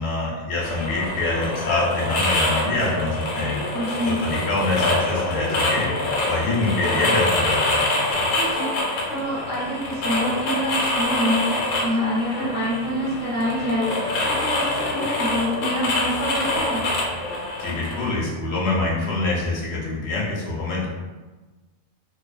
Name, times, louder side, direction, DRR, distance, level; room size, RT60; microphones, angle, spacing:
voice 1, 0.0-3.6 4.0-5.9 6.2-7.9 17.6-20.9, left 2 dB, 60° left, -5 dB, 0.8 m, -25 dB
sound 1, 0.6-18.1, left 2 dB, 85° left, 1.1 m, -25 dB
voice 2, 3.7-4.2 8.3-8.7 9.1-16.9, equal, 15° left, -10 dB, 0.4 m, -26 dB
2.3 x 2.2 x 2.3 m, 1.2 s
omnidirectional pair, 1.5 m